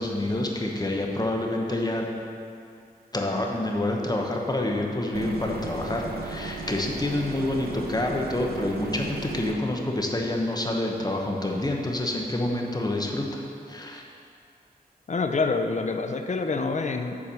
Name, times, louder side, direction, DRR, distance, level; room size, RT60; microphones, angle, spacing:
voice 1, 0.0-2.0 3.1-14.0, left 1 dB, 25° left, 0 dB, 1.1 m, -28 dB
sound 1, 5.1-9.5, right 3 dB, 75° right, 0.8 m, -36 dB
voice 2, 15.1-17.2, left 4 dB, 45° left, 6 dB, 0.6 m, -26 dB
7.4 x 4.7 x 6.9 m, 2.5 s
wide cardioid pair, 65°, 16 cm